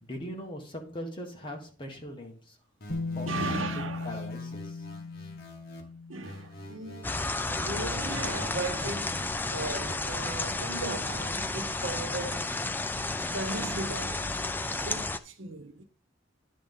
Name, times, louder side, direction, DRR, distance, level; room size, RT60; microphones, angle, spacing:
voice 1, 0.0-2.6 3.1-3.3 3.7-4.8, equal, 25° left, 1.5 m, -40 dB
sound 1, 2.8-5.8 6.2-9.2, left 1 dB, 50° left, 1.5 m, -47 dB
Bass guitar, 2.9-8.9, left 3 dB, 85° left, 1.0 m, -39 dB
voice 2, 3.3-4.2 6.1-7.1 7.4-12.6 13.3-14.5 14.8-15.8, right 3 dB, 75° right, 1.0 m, -37 dB
sound 2, 7.0-15.2, left 2 dB, 10° left, 0.3 m, -32 dB
10.0 x 3.5 x 5.5 m
head